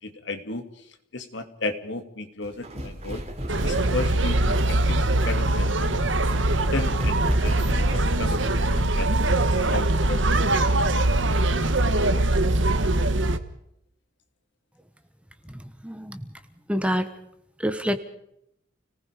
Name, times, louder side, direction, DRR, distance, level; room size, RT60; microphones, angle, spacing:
voice 1, 0.0-3.2 3.6-6.0 6.7-10.8, left 2 dB, 65° left, 8 dB, 2.4 m, -34 dB
sound 1, 2.4-8.5, equal, 35° right, 3.5 m, -32 dB
sound 2, 3.5-13.4, right 2 dB, 70° right, 1.5 m, -22 dB
voice 2, 15.5-16.3 16.7-17.1 17.6-18.0, equal, 5° right, 9 dB, 1.3 m, -27 dB
29.5 x 19.5 x 5.2 m, 0.76 s
head